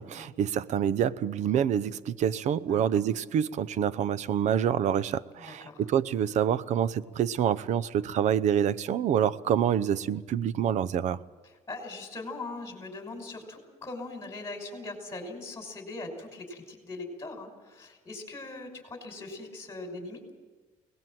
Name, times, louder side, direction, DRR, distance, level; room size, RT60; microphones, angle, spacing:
voice 1, 0.0-11.2, right 9 dB, 60° right, 18 dB, 0.8 m, -27 dB
voice 2, 2.7-3.0 5.4-5.8 11.4-20.3, left 2 dB, 20° left, 3 dB, 5.8 m, -41 dB
23.0 x 19.0 x 7.6 m, 1.3 s
cardioid pair, 110°, 13 cm